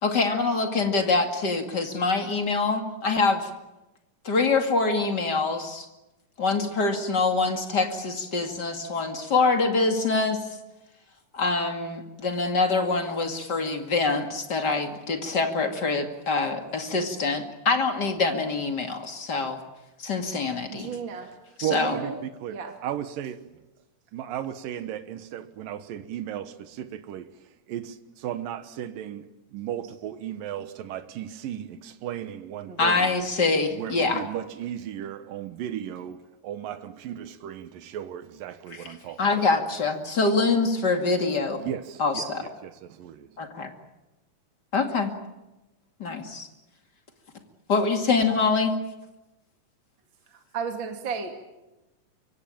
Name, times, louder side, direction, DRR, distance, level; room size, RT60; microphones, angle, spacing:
voice 1, 0.0-3.5 4.2-5.9 6.4-10.5 11.3-19.6 20.0-20.9 21.7-22.0 32.8-34.2 39.2-41.6 42.0-42.4 43.4-43.7 44.7-45.1 46.0-46.5 47.7-48.7, left 3 dB, 35° left, 2.5 m, -25 dB
voice 2, 20.7-21.4 21.7-22.1 22.5-22.7 32.7-33.0 50.5-51.3, right 6 dB, 35° right, 2.8 m, -34 dB
voice 3, 21.6-23.4 24.1-33.2 33.7-39.5 41.6-43.4, right 10 dB, 85° right, 2.9 m, -35 dB
24.5 x 24.5 x 9.0 m
omnidirectional pair, 3.9 m